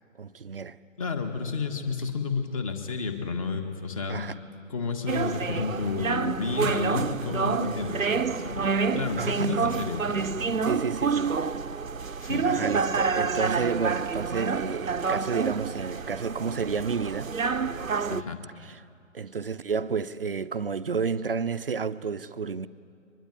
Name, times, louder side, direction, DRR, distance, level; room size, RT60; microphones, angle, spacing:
voice 1, 0.2-0.8 4.1-4.3 9.2-9.6 10.6-11.3 12.4-17.3 19.1-22.7, right 5 dB, 45° right, 0.6 m, -31 dB
voice 2, 1.0-4.3 4.7-8.7 8.9-10.6 12.2-12.7 18.1-18.4, left 5 dB, 25° left, 1.7 m, -31 dB
sound 1, 5.1-18.2, right 5 dB, 80° right, 0.8 m, -28 dB
23.5 x 21.5 x 9.4 m
figure-of-eight pair, 145°, 40 cm